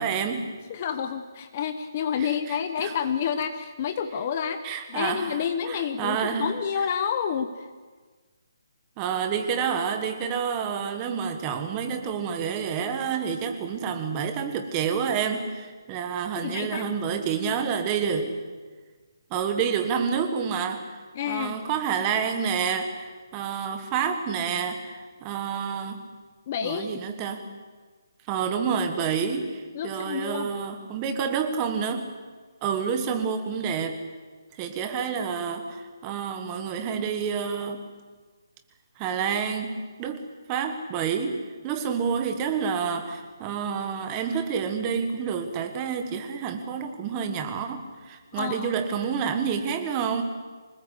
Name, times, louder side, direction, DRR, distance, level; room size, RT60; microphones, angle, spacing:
voice 1, 0.0-0.5 2.2-2.9 4.6-5.4 5.7-6.5 9.0-18.3 19.3-21.0 21.3-26.0 26.6-27.4 28.3-32.1 32.6-34.0 34.5-37.8 39.0-40.2 40.5-50.2, right 6 dB, 15° right, 7 dB, 1.4 m, -28 dB
voice 2, 0.7-7.7 16.4-16.9 21.1-21.5 26.5-27.0 29.7-30.5 48.3-48.7, left 7 dB, 25° left, 9 dB, 0.9 m, -29 dB
25.5 x 19.5 x 8.3 m, 1.4 s
hypercardioid pair, 175°, 2 cm